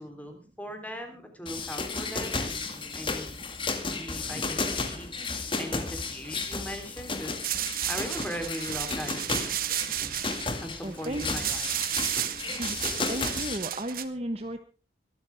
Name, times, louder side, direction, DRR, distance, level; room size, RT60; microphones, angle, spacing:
voice 1, 0.0-3.4 3.7-5.1 5.6-7.5 7.9-9.4 10.6-11.7, equal, 10° left, 5 dB, 3.5 m, -39 dB
sound 1, 1.5-13.6, left 3 dB, 30° left, 2.1 m, -33 dB
sound 2, 7.3-13.6, left 2 dB, 75° left, 4.2 m, -52 dB
sound 3, 7.4-14.0, right 11 dB, 55° right, 1.4 m, -32 dB
voice 2, 10.8-11.2 12.5-12.8 13.1-14.6, right 1 dB, 35° right, 7 dB, 1.2 m, -34 dB
24.0 x 13.0 x 3.5 m, 0.35 s
head